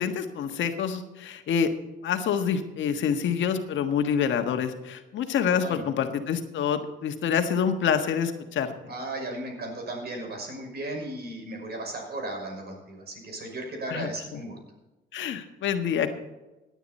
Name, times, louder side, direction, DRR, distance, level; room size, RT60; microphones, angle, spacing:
voice 1, 0.0-1.7 2.0-8.7 13.9-14.1 15.1-16.1, left 7 dB, 70° left, 6 dB, 1.5 m, -27 dB
voice 2, 5.5-5.9 8.9-14.6, right 2 dB, 55° right, 2 dB, 5.7 m, -36 dB
16.5 x 10.0 x 4.3 m, 1.1 s
cardioid pair, 90°, 20 cm